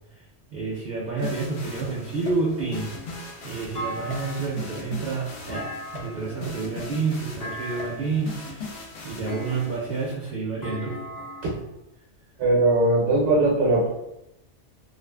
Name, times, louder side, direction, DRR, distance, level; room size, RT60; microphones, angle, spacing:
voice 1, 0.5-5.7 5.9-8.8 9.0-11.0, right 4 dB, 60° right, -4 dB, 0.7 m, -29 dB
sound 1, 1.2-10.1, left 3 dB, 65° left, 0.8 m, -40 dB
Thump thud, 3.7-4.7 5.5-6.4 7.4-8.2 9.3-10.0 10.6-11.6, equal, 30° left, 0.4 m, -37 dB
voice 2, 12.4-13.9, right 2 dB, 80° right, -5 dB, 1.0 m, -20 dB
2.4 x 2.4 x 2.2 m, 0.86 s
omnidirectional pair, 1.3 m